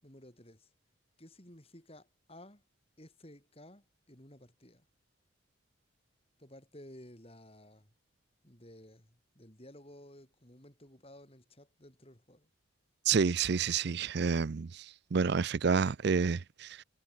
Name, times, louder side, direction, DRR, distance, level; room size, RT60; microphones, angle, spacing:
voice 1, 0.0-0.7 1.2-2.6 3.0-4.9 6.4-7.9 8.4-12.5, left 1 dB, 30° left, 6.0 m, -55 dB
voice 2, 13.1-16.8, right 5 dB, 55° right, 0.5 m, -29 dB
head